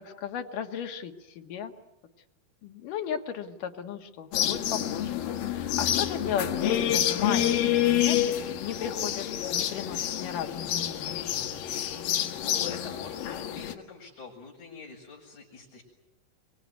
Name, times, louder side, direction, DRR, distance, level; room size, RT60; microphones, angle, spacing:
voice 1, 0.0-1.7 2.6-10.9, left 8 dB, 70° left, 5 dB, 3.3 m, -35 dB
sound 1, 4.3-13.7, left 11 dB, 90° left, 3.2 m, -28 dB
voice 2, 12.3-15.8, left 5 dB, 55° left, -6 dB, 7.4 m, -45 dB
24.5 x 24.0 x 9.5 m, 0.91 s
omnidirectional pair, 3.9 m